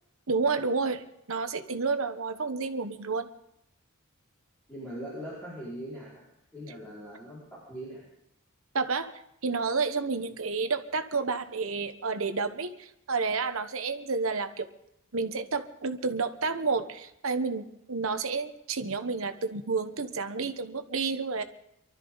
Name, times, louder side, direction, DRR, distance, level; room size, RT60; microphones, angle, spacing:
voice 1, 0.3-3.3 8.7-9.1 9.4-14.7 15.1-21.4, right 4 dB, 70° right, 9 dB, 1.1 m, -30 dB
voice 2, 4.7-8.0, equal, 5° left, -9 dB, 5.2 m, -41 dB
24.0 x 13.0 x 4.0 m, 0.76 s
head